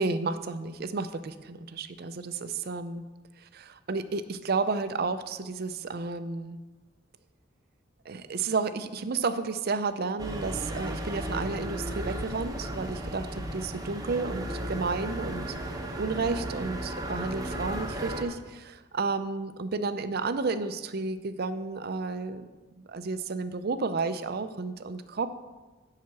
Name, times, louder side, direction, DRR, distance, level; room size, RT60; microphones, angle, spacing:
voice 1, 0.0-3.0 3.5-6.6 8.1-15.5 16.0-22.5 22.9-25.3, right 4 dB, 50° right, 11 dB, 0.5 m, -32 dB
sound 1, 10.2-18.2, right 1 dB, 20° right, 0.9 m, -35 dB
7.5 x 5.7 x 7.1 m, 1.2 s
head